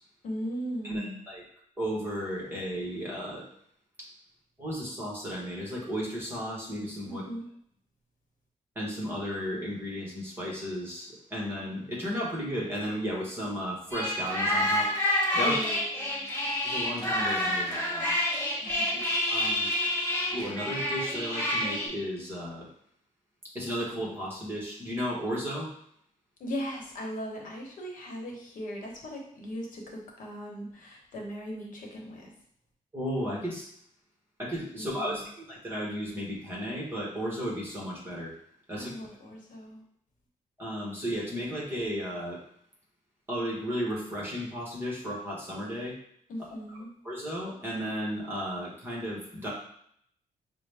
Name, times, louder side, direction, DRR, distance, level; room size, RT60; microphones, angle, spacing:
voice 1, 0.2-1.2 7.0-7.5 15.4-16.2 18.6-19.0 19.4-19.8 26.4-32.3 34.7-35.2 38.8-39.8 46.3-46.9, equal, 70° left, 0 dB, 0.9 m, -38 dB
voice 2, 0.8-1.4 1.8-3.5 4.6-7.2 8.7-14.9 15.3-15.5 16.6-18.2 19.3-19.7 20.3-22.7 23.5-25.7 32.9-33.7 34.4-38.3 38.7-38.9 40.6-42.4 43.3-45.9 47.0-49.5, equal, 15° right, -4 dB, 1.1 m, -34 dB
sound 1, 13.9-21.9, left 1 dB, 15° left, 1.0 m, -28 dB
5.7 x 2.1 x 3.3 m, 0.68 s
wide cardioid pair, 170°, 14 cm